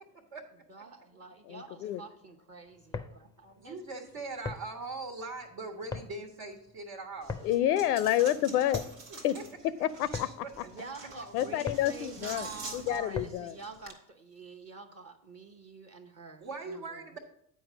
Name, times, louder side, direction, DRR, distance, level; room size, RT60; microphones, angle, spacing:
voice 1, 0.7-3.8 10.6-17.1, right 4 dB, 30° right, 2 dB, 0.9 m, -47 dB
voice 2, 1.5-2.0 7.4-8.9 9.2-9.4 9.8-10.4 11.3-12.5 12.7-13.5, left 12 dB, 75° left, 15 dB, 0.5 m, -28 dB
sound 1, 2.7-13.6, left 4 dB, 10° left, 0.4 m, -43 dB
voice 3, 3.6-7.4 9.1-9.4 10.1-10.5 16.4-17.2, right 3 dB, 60° right, 0 dB, 1.4 m, -41 dB
Coin (dropping), 7.2-13.9, right 3 dB, 80° right, 1.2 m, -47 dB
9.1 x 4.6 x 5.1 m, 0.72 s
hypercardioid pair, 65°, 46 cm